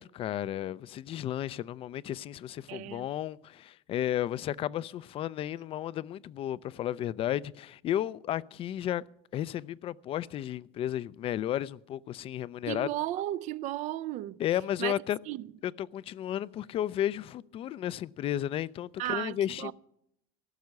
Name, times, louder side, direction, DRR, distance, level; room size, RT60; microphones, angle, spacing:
voice 1, 0.0-9.0 9.3-12.9 14.4-15.2 15.6-19.7, left 11 dB, 40° left, 0.4 m, -33 dB
voice 2, 2.7-3.1 12.7-14.4 14.8-14.9 15.3-15.4 19.0-19.7, right 14 dB, 55° right, 0.4 m, -34 dB
16.5 x 6.4 x 9.4 m
cardioid pair, 130°, 15 cm